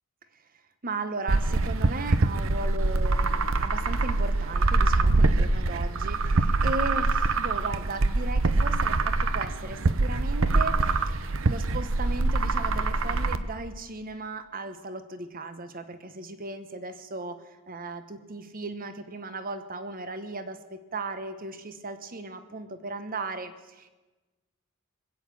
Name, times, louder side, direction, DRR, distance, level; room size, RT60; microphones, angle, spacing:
voice 1, 0.8-10.8 11.5-17.4 17.7-24.0, right 3 dB, 45° right, 10 dB, 1.2 m, -36 dB
sound 1, 1.3-13.4, right 3 dB, 70° right, 0.8 m, -24 dB
20.5 x 8.3 x 8.5 m, 1.2 s
head